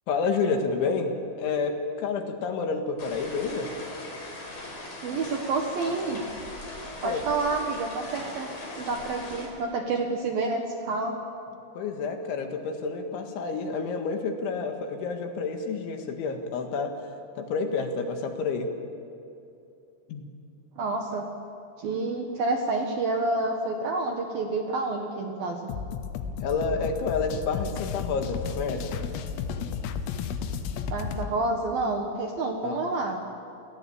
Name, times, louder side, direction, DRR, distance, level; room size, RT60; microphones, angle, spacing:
voice 1, 0.1-3.7 7.0-7.2 11.8-16.9 17.4-18.7 20.1-20.3 26.4-29.0 32.6-32.9, left 4 dB, 70° left, 4 dB, 4.0 m, -29 dB
sound 1, 3.0-9.5, left 2 dB, 40° left, 6.6 m, -40 dB
voice 2, 5.0-6.2 7.0-8.5 8.8-11.2 20.8-21.3 21.8-25.7 30.9-33.2, right 3 dB, 65° right, 3 dB, 2.5 m, -29 dB
sound 2, 25.7-31.3, left 6 dB, 90° left, 3.9 m, -33 dB
30.0 x 19.0 x 8.8 m, 2.8 s
omnidirectional pair, 6.0 m